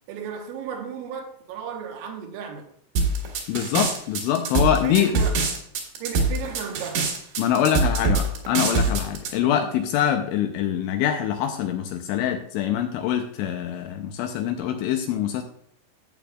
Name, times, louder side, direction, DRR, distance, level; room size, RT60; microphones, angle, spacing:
voice 1, 0.1-2.7 4.8-5.4 6.0-7.1 9.4-9.6, right 7 dB, 80° right, 3.7 m, -34 dB
sound 1, 3.0-9.3, right 3 dB, 65° right, 3.4 m, -23 dB
voice 2, 3.5-5.2 7.4-15.4, left 10 dB, 85° left, 2.8 m, -24 dB
14.5 x 8.1 x 2.4 m
omnidirectional pair, 6.0 m